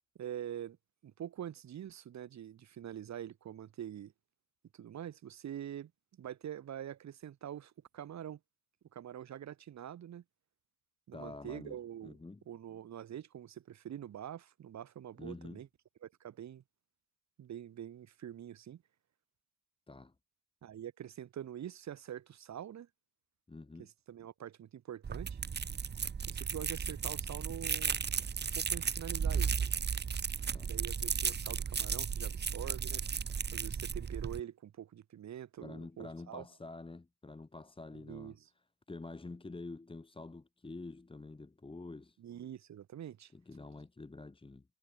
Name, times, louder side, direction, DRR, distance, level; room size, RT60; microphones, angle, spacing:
voice 1, 0.2-0.8 1.0-4.1 4.7-5.9 6.2-8.4 8.9-10.2 11.1-12.2 12.5-15.7 16.0-16.6 17.4-18.8 20.6-22.9 23.8-25.4 26.3-28.0 28.4-29.5 30.6-33.2 33.5-36.5 37.9-38.5 42.2-43.3, right 10 dB, 65° right, 4.1 m, -45 dB
voice 2, 11.1-11.8 12.0-12.4 15.2-15.6 19.9-20.1 23.5-23.9 30.5-30.7 35.6-38.4 38.9-42.2 43.3-44.6, left 3 dB, 15° left, 2.1 m, -47 dB
sound 1, 25.0-34.4, right 6 dB, 35° right, 1.4 m, -35 dB
cardioid pair, 90°, 30 cm